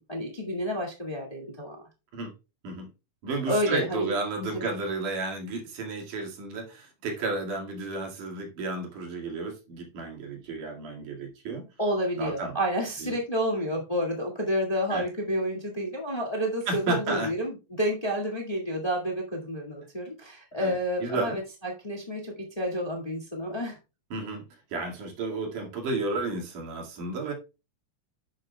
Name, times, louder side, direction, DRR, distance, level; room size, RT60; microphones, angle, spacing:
voice 1, 0.1-1.8 3.5-4.1 4.4-4.7 11.8-23.8, equal, 15° left, 1.4 m, -30 dB
voice 2, 3.2-11.7 12.2-12.6 13.0-13.2 14.9-15.0 16.7-17.3 20.6-21.4 24.1-24.4 24.7-27.3, right 3 dB, 85° right, 3.7 m, -32 dB
11.0 x 7.6 x 2.3 m
omnidirectional pair, 3.5 m